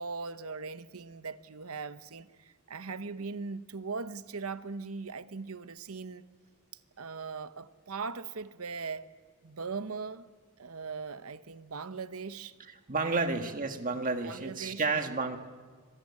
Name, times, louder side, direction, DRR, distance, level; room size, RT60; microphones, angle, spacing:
voice 1, 0.0-6.3 7.0-9.1 9.4-10.3 10.6-12.5 13.0-13.3 14.2-15.2, right 4 dB, 90° right, 0.9 m, -40 dB
voice 2, 12.9-15.4, right 3 dB, 40° right, 1.7 m, -31 dB
25.5 x 18.0 x 8.6 m
head